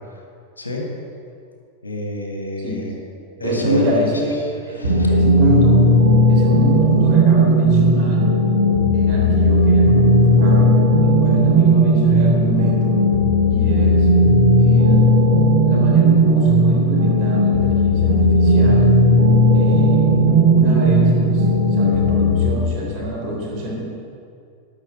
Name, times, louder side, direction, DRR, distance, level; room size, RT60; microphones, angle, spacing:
voice 1, 1.8-2.9 3.4-4.1 4.8-5.1, left 1 dB, 80° left, 1 dB, 1.9 m, -27 dB
voice 2, 3.4-4.4 4.7-5.8 6.3-8.3 8.9-10.8 11.0-13.0 13.5-14.1 14.6-15.1 15.6-18.9 19.5-20.2 20.4-23.8, equal, 40° right, -3 dB, 3.5 m, -26 dB
sound 1, 4.8-22.5, equal, 85° right, 2.2 m, -15 dB
11.5 x 6.2 x 8.0 m, 2.3 s
figure-of-eight pair, 90°, 0 cm